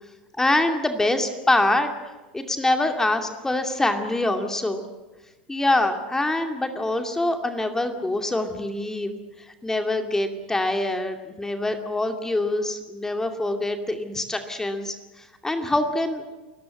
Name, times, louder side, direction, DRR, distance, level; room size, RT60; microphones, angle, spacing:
voice 1, 0.4-4.8 5.5-9.1 9.6-16.2, left 2 dB, 10° left, 6 dB, 2.5 m, -25 dB
29.5 x 15.5 x 7.8 m, 1.2 s
hypercardioid pair, 85°, 5 cm